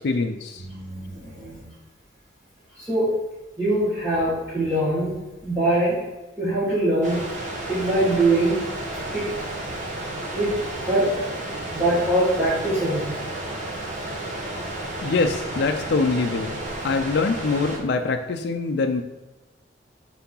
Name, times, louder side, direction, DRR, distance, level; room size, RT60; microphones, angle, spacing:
voice 1, 0.0-0.7 15.0-16.6 16.8-19.0, left 4 dB, 60° left, 5 dB, 0.4 m, -24 dB
voice 2, 0.6-1.6 2.8-3.2 3.6-6.0 6.4-7.3 7.7-8.7 9.1-9.4 10.3-11.2 11.7-13.1 13.8-13.9, right 1 dB, 15° right, -12 dB, 1.7 m, -23 dB
sound 1, 7.0-17.8, right 1 dB, 40° right, 1.2 m, -32 dB
4.7 x 3.8 x 5.5 m, 1.1 s
head